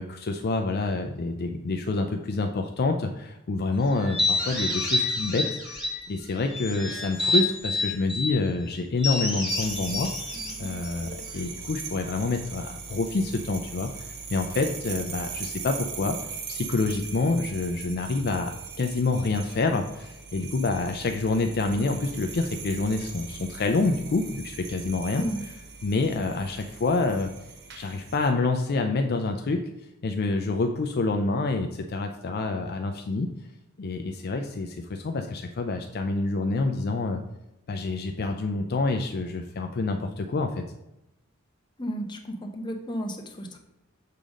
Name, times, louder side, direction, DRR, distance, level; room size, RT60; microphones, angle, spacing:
voice 1, 0.0-10.1 10.6-16.1 16.5-18.5 18.8-25.2 25.8-27.3 27.8-29.6 30.0-33.3 33.8-37.2 37.7-40.6, left 3 dB, 50° left, 5 dB, 0.5 m, -27 dB
sound 1, 4.0-6.1 6.5-8.4 9.0-11.5, left 2 dB, 5° right, 2.1 m, -28 dB
sound 2, 9.5-28.3, right 6 dB, 55° right, 0.8 m, -40 dB
voice 2, 41.8-43.6, equal, 20° left, 3 dB, 0.9 m, -33 dB
6.7 x 3.7 x 5.1 m, 0.90 s
head